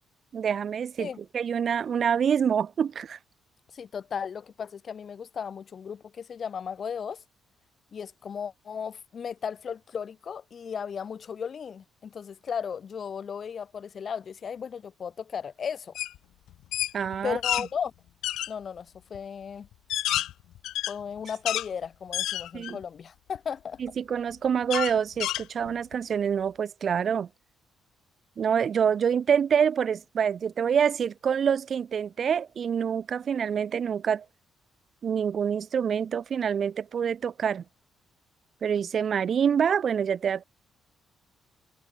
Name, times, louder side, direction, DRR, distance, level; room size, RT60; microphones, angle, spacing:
voice 1, 0.3-1.1 1.3-3.2 16.9-17.4 22.5-22.8 23.8-27.3 28.4-34.2 35.0-37.6 38.6-40.4, right 7 dB, 55° right, 2.7 m, -26 dB
voice 2, 3.7-7.2 7.9-15.9 17.2-17.9 18.5-19.7 20.9-23.8, left 7 dB, 50° left, 6.8 m, -35 dB
sound 1, 16.0-16.2 16.5-17.7 18.2-18.5 19.1-19.2 19.7-21.7 22.1-22.8 23.4-23.5 24.7-25.9, left 14 dB, 85° left, 1.7 m, -29 dB
cardioid pair, 90°, 0 cm